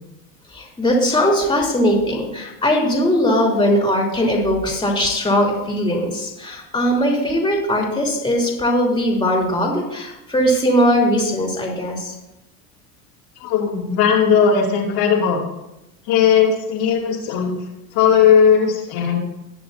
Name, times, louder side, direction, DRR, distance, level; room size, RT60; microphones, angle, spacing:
voice 1, 0.5-12.1, equal, 10° left, -2 dB, 3.3 m, -19 dB
voice 2, 13.4-15.4 16.1-17.6 17.9-19.2, left 7 dB, 60° left, -3 dB, 2.9 m, -17 dB
19.5 x 6.7 x 2.8 m, 0.92 s
supercardioid pair, 105°, 47 cm